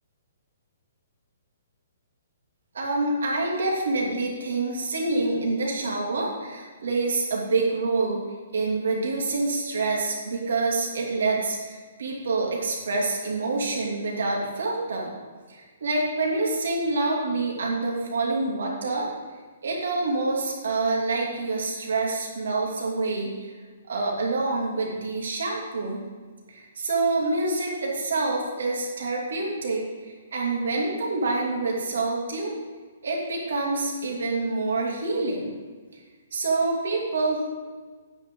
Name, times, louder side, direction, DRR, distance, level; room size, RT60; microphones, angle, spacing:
voice 1, 2.7-8.2 8.5-15.1 15.5-19.1 19.6-23.5 23.9-26.0 26.5-32.5 33.0-35.5 36.3-37.5, right 3 dB, 80° right, -2 dB, 2.9 m, -27 dB
9.7 x 9.0 x 3.9 m, 1.5 s
hypercardioid pair, 170°, 0 cm